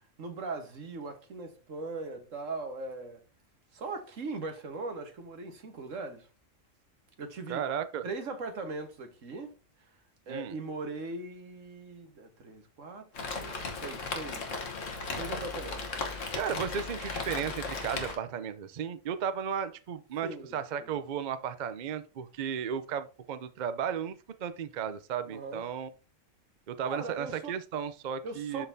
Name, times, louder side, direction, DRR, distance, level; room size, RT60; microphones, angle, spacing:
voice 1, 0.2-3.2 3.7-6.3 7.2-7.6 8.0-9.5 10.3-14.6 15.1-15.8 16.6-16.7 20.2-20.9 25.3-25.6 26.8-27.5 28.2-28.7, right 3 dB, 80° right, 1.6 m, -40 dB
voice 2, 7.5-8.0 10.3-10.6 16.3-25.9 26.7-28.7, right 8 dB, 50° right, 0.5 m, -34 dB
Rain, 13.1-18.2, left 4 dB, 70° left, 1.5 m, -36 dB
12.0 x 4.0 x 2.7 m
omnidirectional pair, 1.3 m